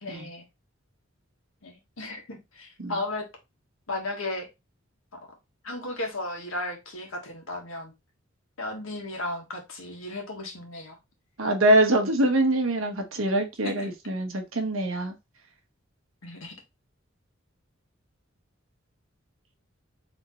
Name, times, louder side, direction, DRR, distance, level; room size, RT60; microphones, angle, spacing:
voice 1, 0.0-0.4 1.6-3.2 3.9-4.5 5.6-7.9 8.6-11.0 13.6-13.9 16.2-16.5, left 2 dB, 85° left, 1.6 m, -35 dB
voice 2, 11.4-15.1, right 1 dB, 90° right, 1.2 m, -24 dB
4.3 x 3.6 x 3.0 m
head